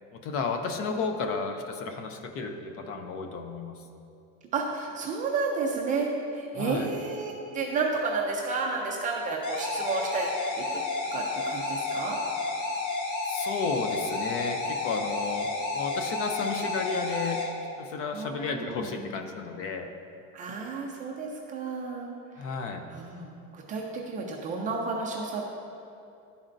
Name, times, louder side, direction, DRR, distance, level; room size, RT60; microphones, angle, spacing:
voice 1, 0.1-3.8 6.5-6.9 13.3-17.4 17.8-19.9 22.4-22.9, left 4 dB, 40° left, 6 dB, 0.5 m, -33 dB
voice 2, 4.5-10.8 11.1-12.2 18.1-18.9 20.3-22.1 22.9-25.4, right 4 dB, 25° right, -1 dB, 0.3 m, -31 dB
sound 1, 9.4-17.4, left 3 dB, 60° left, 1.3 m, -31 dB
11.5 x 4.2 x 2.5 m, 2.7 s
cardioid pair, 165°, 36 cm